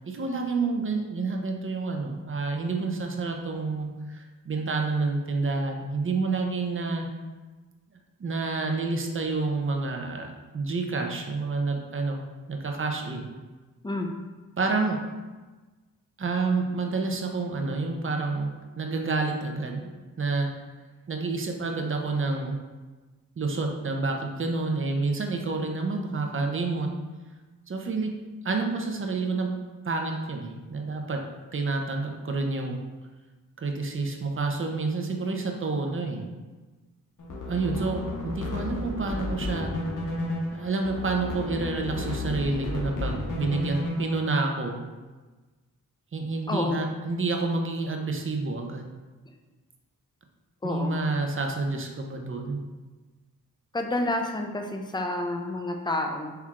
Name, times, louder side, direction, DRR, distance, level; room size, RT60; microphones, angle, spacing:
voice 1, 0.0-7.1 8.2-12.2 12.5-13.3 14.6-15.0 16.2-19.9 20.2-20.5 21.1-22.6 23.4-26.9 27.7-28.1 28.4-29.5 29.8-31.3 31.5-32.8 33.6-36.3 37.5-39.8 40.5-44.8 46.1-48.9 50.6-52.6, right 3 dB, 35° right, 3 dB, 0.6 m, -29 dB
sound 1, 37.2-44.3, left 2 dB, 60° left, 0.9 m, -32 dB
voice 2, 46.5-46.8 50.6-51.0 53.7-56.4, left 2 dB, 15° left, 3 dB, 0.5 m, -29 dB
4.4 x 3.5 x 2.4 m, 1.3 s
cardioid pair, 50°, 35 cm